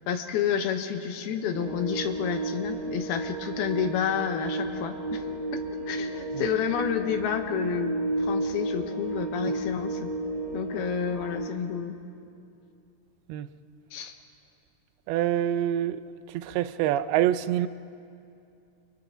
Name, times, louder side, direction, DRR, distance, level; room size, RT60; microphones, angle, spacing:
voice 1, 0.1-5.2 5.5-10.1 10.5-12.0 13.9-14.1, left 8 dB, 85° left, 3.1 m, -30 dB
sound 1, 1.5-11.4, right 2 dB, 50° right, 4.2 m, -32 dB
voice 2, 15.1-16.0 16.3-17.7, right 12 dB, 90° right, 2.6 m, -26 dB
29.5 x 29.0 x 3.9 m
omnidirectional pair, 4.4 m